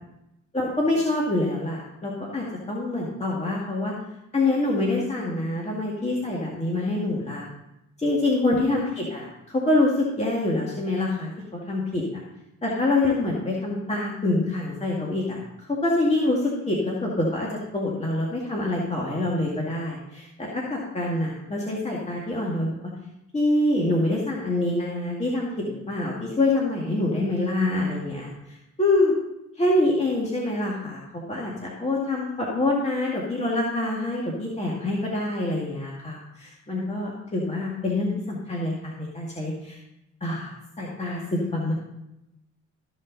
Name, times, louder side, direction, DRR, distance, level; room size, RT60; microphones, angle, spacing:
voice 1, 0.5-3.9 4.3-7.5 8.0-11.3 11.7-12.2 12.6-17.5 17.7-22.9 23.3-29.1 29.6-31.0 31.3-39.8 40.2-41.7, left 2 dB, 20° left, -3 dB, 2.1 m, -26 dB
14.0 x 5.5 x 4.1 m, 0.88 s
cardioid pair, 90°, 30 cm